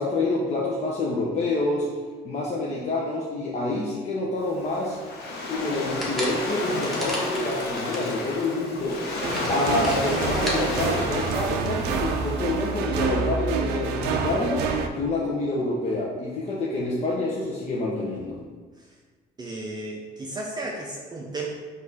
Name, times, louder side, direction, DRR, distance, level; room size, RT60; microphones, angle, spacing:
voice 1, 0.0-1.9 2.2-5.0 5.5-9.0 9.5-14.7 14.9-18.4, left 2 dB, 40° left, -5 dB, 0.7 m, -27 dB
Waves surf, 4.4-12.6, left 2 dB, 70° left, 0.8 m, -32 dB
sound 1, 5.5-8.1 8.5-8.6 8.9-10.6, equal, ahead, 1.0 m, -34 dB
sound 2, 9.2-14.9, right 5 dB, 80° right, 0.4 m, -27 dB
voice 2, 19.4-21.5, right 2 dB, 25° right, -2 dB, 0.5 m, -34 dB
4.6 x 2.5 x 3.9 m, 1.4 s
cardioid pair, 110°, 17 cm